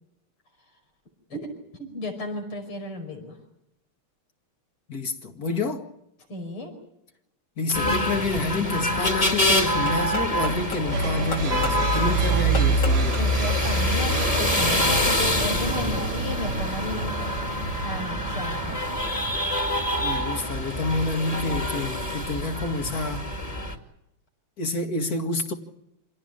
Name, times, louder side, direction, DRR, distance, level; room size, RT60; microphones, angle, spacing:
voice 1, 1.8-3.3 6.3-6.7 13.2-17.1 17.8-18.8, left 1 dB, 75° left, 6.2 m, -34 dB
voice 2, 4.9-5.9 7.6-13.2 20.0-23.3 24.6-25.5, left 3 dB, 45° left, 2.4 m, -28 dB
sound 1, 7.7-23.7, equal, 15° left, 2.5 m, -25 dB
sound 2, 8.0-13.9, left 3 dB, 60° left, 4.4 m, -37 dB
sound 3, 10.9-18.8, right 3 dB, 75° right, 2.3 m, -31 dB
27.0 x 17.5 x 8.9 m
omnidirectional pair, 2.4 m